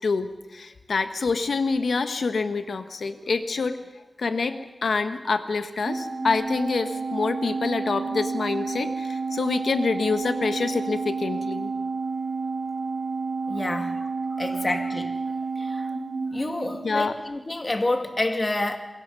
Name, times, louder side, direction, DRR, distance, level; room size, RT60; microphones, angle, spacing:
voice 1, 0.0-3.8 4.2-11.7 13.7-13.9 14.3-14.4 16.8-17.1, left 4 dB, 85° left, 8 dB, 1.6 m, -26 dB
Organ, 5.9-17.1, right 4 dB, 50° right, 2.5 m, -30 dB
voice 2, 13.5-14.0 14.4-15.2 15.6-15.9 16.3-18.8, left 2 dB, 30° left, 5 dB, 2.5 m, -28 dB
28.5 x 22.0 x 5.6 m, 1.1 s
wide cardioid pair, 110°, 0 cm